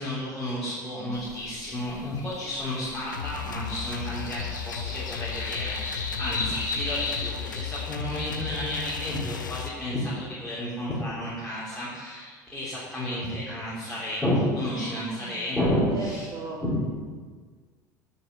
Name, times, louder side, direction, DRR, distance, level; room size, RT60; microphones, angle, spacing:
voice 1, 0.0-16.3 16.6-16.8, left 1 dB, 5° left, -10 dB, 3.3 m, -31 dB
sound 1, 1.1-7.3, left 3 dB, 35° left, 2.6 m, -36 dB
sound 2, 3.1-9.7, left 7 dB, 80° left, 0.5 m, -35 dB
voice 2, 14.7-15.4 15.9-16.6, right 3 dB, 40° right, -1 dB, 1.4 m, -37 dB
9.2 x 6.9 x 6.0 m, 1.5 s
figure-of-eight pair, 70°, 10 cm